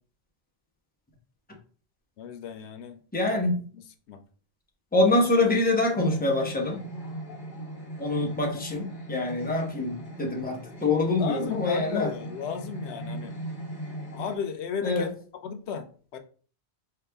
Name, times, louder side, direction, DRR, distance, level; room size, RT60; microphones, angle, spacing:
voice 1, 2.2-3.0 3.3-3.4 3.7-4.2 11.2-13.3 14.1-15.1 15.4-16.2, left 6 dB, 90° left, 0.9 m, -35 dB
voice 2, 3.1-3.6 4.9-6.8 8.0-12.1 14.8-15.1, left 2 dB, 10° left, 0.9 m, -25 dB
sound 1, 5.9-14.4, right 1 dB, 50° left, 1.1 m, -39 dB
4.7 x 2.9 x 3.4 m
omnidirectional pair, 1.1 m